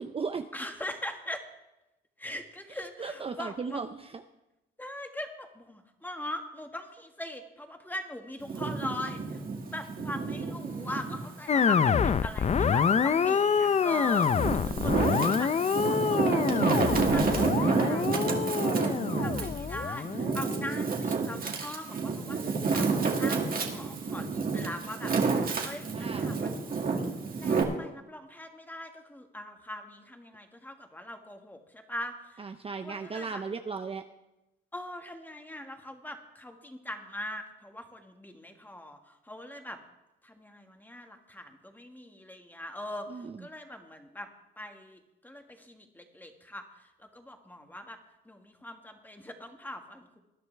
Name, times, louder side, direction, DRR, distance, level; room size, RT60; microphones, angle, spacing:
voice 1, 0.0-0.5 2.7-4.2 20.5-21.0 25.8-26.3 32.4-34.0 43.1-43.5, right 5 dB, 30° right, 7 dB, 0.6 m, -37 dB
voice 2, 0.5-1.4 2.2-3.8 4.8-9.2 9.7-16.6 16.9-18.7 19.2-25.1 25.6-26.7 27.4-32.4 32.8-33.4 34.7-39.8 40.2-43.1 43.4-44.3 44.6-46.6 47.0-48.0 48.2-50.2, left 1 dB, 10° left, 4 dB, 1.7 m, -41 dB
Wind, 8.4-11.3 11.8-13.1 13.7-27.6, right 4 dB, 45° right, 2.1 m, -29 dB
sound 1, 11.5-20.8, left 6 dB, 35° left, 0.5 m, -26 dB
20.0 x 11.0 x 3.4 m, 0.95 s
cardioid pair, 90°, 20 cm